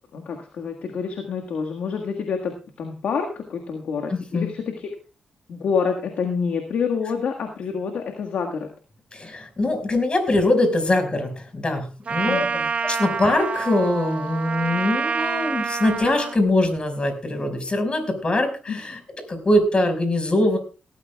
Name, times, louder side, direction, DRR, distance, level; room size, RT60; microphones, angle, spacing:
voice 1, 0.1-4.9 5.5-8.7 12.2-12.7 18.7-18.8, left 6 dB, 75° left, 3 dB, 1.6 m, -27 dB
voice 2, 4.1-4.5 9.1-12.4 12.8-19.0 19.3-20.6, left 1 dB, 40° left, 7 dB, 5.1 m, -22 dB
Trumpet, 12.1-16.4, right 5 dB, 50° right, 0.6 m, -27 dB
18.5 x 14.0 x 2.3 m, 0.33 s
supercardioid pair, 45°, 3 cm